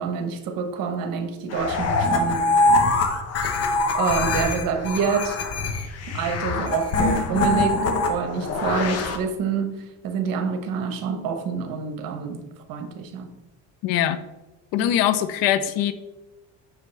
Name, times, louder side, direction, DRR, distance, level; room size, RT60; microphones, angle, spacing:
voice 1, 0.0-2.4 3.9-5.4 6.1-12.4 12.7-13.3 14.8-14.9, right 6 dB, 70° right, 1.0 m, -27 dB
sound 1, 1.5-9.2, left 2 dB, 45° left, 0.8 m, -23 dB
voice 2, 13.8-14.2 14.7-15.9, left 11 dB, 85° left, 0.6 m, -22 dB
6.4 x 5.0 x 3.2 m
cardioid pair, 125°, 35 cm